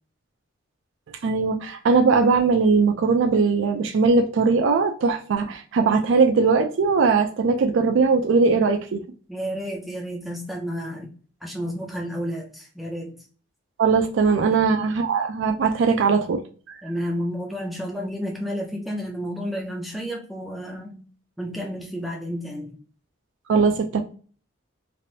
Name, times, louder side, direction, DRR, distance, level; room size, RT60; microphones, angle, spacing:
voice 1, 1.2-9.1 13.8-16.8 23.5-24.0, right 4 dB, 70° right, 0.4 m, -20 dB
voice 2, 9.3-11.1 11.4-13.2 14.5-14.7 16.8-21.0 21.4-22.8, equal, ahead, 0.4 m, -31 dB
3.3 x 2.5 x 2.6 m
head